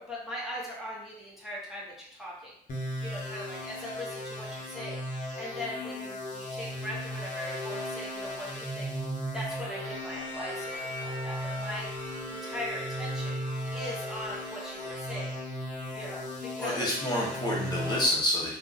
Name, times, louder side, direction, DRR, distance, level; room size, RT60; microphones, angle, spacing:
voice 1, 0.0-2.5 3.0-8.9 9.3-11.9 12.3-13.4 13.7-15.4 15.9-16.9, left 1 dB, ahead, -6 dB, 1.0 m, -40 dB
sound 1, 2.7-18.1, equal, 50° left, 0.9 m, -36 dB
Bowed string instrument, 9.7-15.0, equal, 35° right, 1.0 m, -43 dB
voice 2, 16.6-18.6, left 1 dB, 25° left, -5 dB, 0.9 m, -28 dB
2.6 x 2.4 x 3.9 m, 0.67 s
cardioid pair, 110°, 17 cm